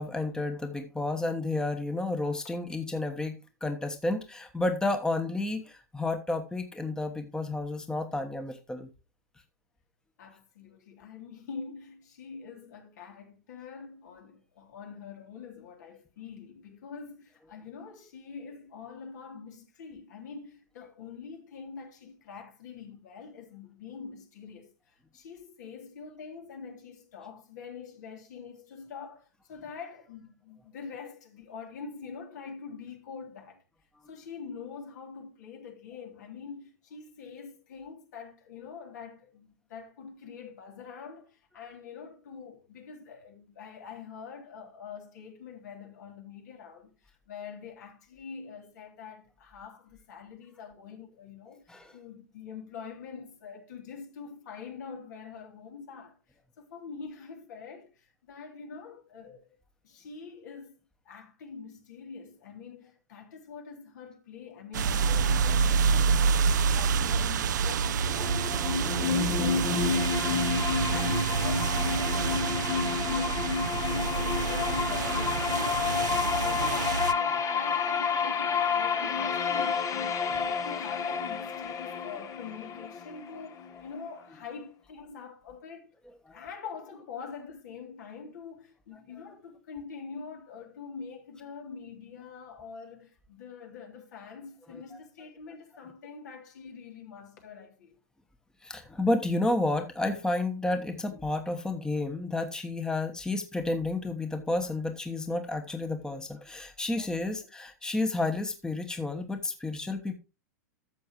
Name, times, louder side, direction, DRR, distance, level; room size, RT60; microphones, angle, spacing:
voice 1, 0.0-8.9 51.7-51.9 86.3-86.4 94.7-94.8 98.6-110.1, left 2 dB, 5° left, 1.2 m, -31 dB
voice 2, 10.2-33.6 34.1-56.2 56.6-59.4 59.8-60.7 61.0-66.3 66.7-77.2 77.5-85.9 86.3-98.0 107.0-107.5, left 6 dB, 70° left, 3.2 m, -45 dB
sound 1, 64.7-77.1, right 6 dB, 80° right, 0.6 m, -28 dB
sound 2, 67.9-83.9, left 6 dB, 35° left, 1.1 m, -30 dB
13.0 x 7.1 x 3.1 m
hypercardioid pair, 105°, 10 cm